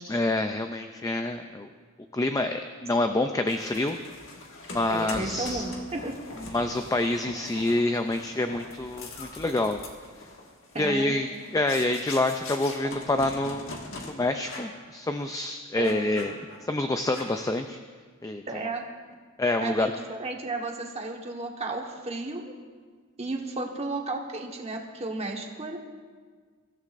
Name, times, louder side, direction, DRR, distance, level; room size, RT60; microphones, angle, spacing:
voice 1, 0.1-1.7 2.1-4.0 4.7-5.7 6.4-9.8 10.8-11.3 11.5-13.8 14.0-16.3 16.6-17.8 18.2-18.6 19.4-19.9, left 2 dB, 15° left, 6 dB, 0.4 m, -27 dB
sound 1, 3.5-14.1 14.4-14.8 15.2-15.3 15.8-16.7 17.1-17.5, left 2 dB, 65° left, 1.8 m, -42 dB
voice 2, 4.9-6.1 10.7-11.1 15.8-16.1 18.5-18.8 19.6-22.5 23.2-25.8, right 2 dB, 30° right, 1 dB, 1.4 m, -33 dB
23.5 x 14.5 x 2.6 m, 1.6 s
head